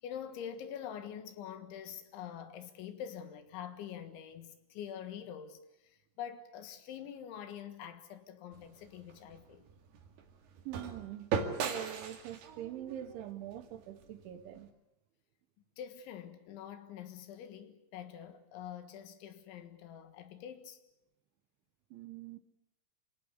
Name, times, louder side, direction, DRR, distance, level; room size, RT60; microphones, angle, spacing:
voice 1, 0.0-9.7 15.8-20.8, left 9 dB, 80° left, 3.9 m, -45 dB
sound 1, 8.5-14.7, right 6 dB, 65° right, 3.9 m, -40 dB
voice 2, 10.7-11.4 11.6-14.7 21.9-22.4, right 12 dB, 80° right, 3.7 m, -44 dB
27.0 x 18.0 x 8.4 m
omnidirectional pair, 5.4 m